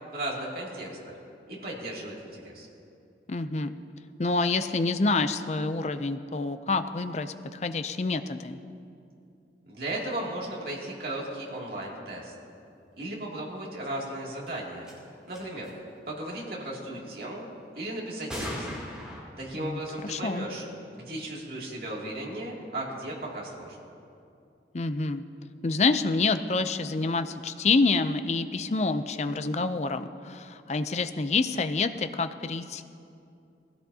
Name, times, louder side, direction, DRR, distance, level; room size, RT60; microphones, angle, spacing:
voice 1, 0.1-1.2 1.5-2.7 9.7-12.3 13.0-14.9 15.3-15.7 16.1-17.5 17.8-18.7 19.4-20.6 20.9-23.8, right 1 dB, 55° right, -4 dB, 2.5 m, -36 dB
voice 2, 3.3-3.8 4.2-8.6 19.6-20.5 24.7-25.2 25.6-32.8, left 3 dB, 40° left, 9 dB, 0.5 m, -27 dB
sound 1, 14.5-14.6 14.8-14.9 15.3-15.7 18.3-19.2, equal, 5° right, 2.9 m, -36 dB
19.5 x 16.5 x 2.8 m, 2.6 s
head